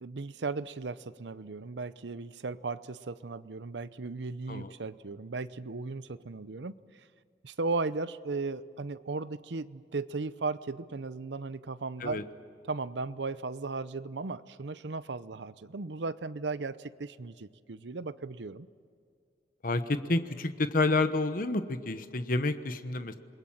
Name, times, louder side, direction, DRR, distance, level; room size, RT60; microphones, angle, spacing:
voice 1, 0.0-6.8 7.4-12.2 12.7-18.7, right 3 dB, 85° right, 15 dB, 0.7 m, -36 dB
voice 2, 19.6-23.2, left 2 dB, 50° left, 10 dB, 1.1 m, -29 dB
28.0 x 21.0 x 7.4 m, 2.3 s
head